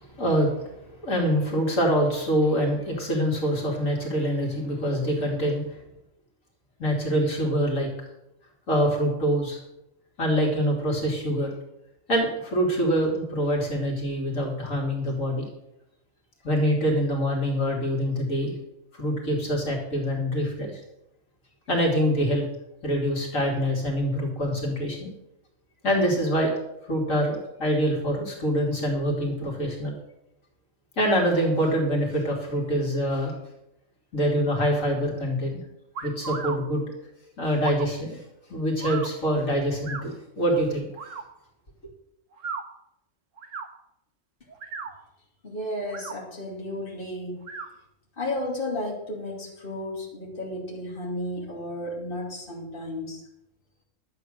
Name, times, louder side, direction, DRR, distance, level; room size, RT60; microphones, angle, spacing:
voice 1, 0.1-0.7 1.0-5.8 6.8-7.9 8.7-9.6 10.2-11.5 12.1-15.4 16.4-18.5 18.9-20.8 21.7-22.4 22.8-25.1 25.8-26.5 26.9-29.9 31.0-33.3 34.1-35.6 36.0-36.8 37.4-38.2 38.5-40.9, equal, 80° left, -1 dB, 3.2 m, -25 dB
sound 1, 35.9-36.6 37.6-37.9 38.8-39.1 39.8-40.0 40.9-41.2 42.3-42.6 43.4-43.7 44.5-44.9 45.8-46.2 47.4-47.7, right 5 dB, 75° right, 1.5 m, -35 dB
voice 2, 45.4-47.4 48.2-53.2, left 1 dB, 40° left, -3 dB, 2.8 m, -33 dB
12.0 x 8.3 x 6.5 m, 0.84 s
omnidirectional pair, 1.4 m